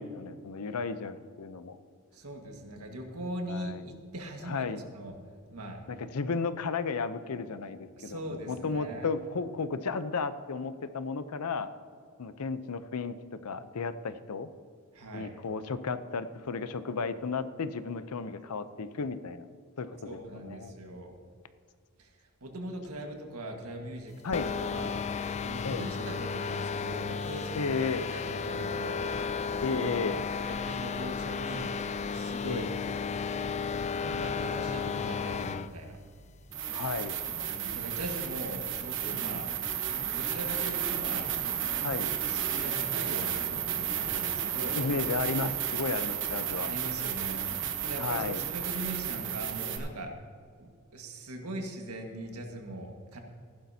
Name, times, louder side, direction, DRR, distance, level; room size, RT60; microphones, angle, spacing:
voice 1, 0.0-1.8 3.5-3.9 4.4-4.8 5.9-8.2 8.5-11.7 12.2-13.1 13.4-14.5 15.1-19.4 19.8-20.8 24.2-24.5 25.6-25.8 27.6-28.1 29.6-30.2 32.4-32.7 36.7-37.2 41.8-42.1 44.7-46.7 48.0-48.4, left 4 dB, 85° left, 12 dB, 0.6 m, -33 dB
voice 2, 2.1-5.1 5.5-5.8 8.0-9.1 14.9-15.3 20.0-21.2 22.0-22.1 22.4-24.2 24.4-24.9 25.4-29.3 29.7-30.1 30.5-31.7 32.0-32.7 34.0-36.0 37.5-41.3 42.0-44.8 46.6-50.1 50.6-53.2, right 1 dB, 90° right, 2 dB, 1.6 m, -41 dB
sound 1, 24.3-35.7, left 5 dB, 30° left, 0.3 m, -33 dB
sound 2, 36.5-49.8, right 9 dB, 60° right, 1.1 m, -32 dB
15.0 x 11.5 x 2.8 m, 2.2 s
head